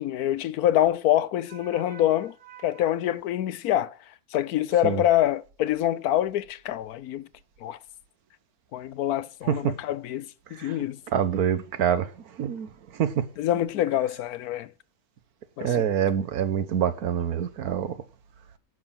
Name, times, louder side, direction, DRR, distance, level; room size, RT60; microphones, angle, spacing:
voice 1, 0.0-2.4 2.6-4.0 4.3-7.3 7.6-7.8 8.7-11.0 13.4-14.7 15.6-15.7, left 12 dB, 90° left, 1.2 m, -25 dB
voice 2, 9.5-9.8 10.5-10.8 11.1-13.3 15.6-17.9, right 8 dB, 90° right, 1.5 m, -26 dB
11.0 x 6.3 x 7.4 m
omnidirectional pair, 1.5 m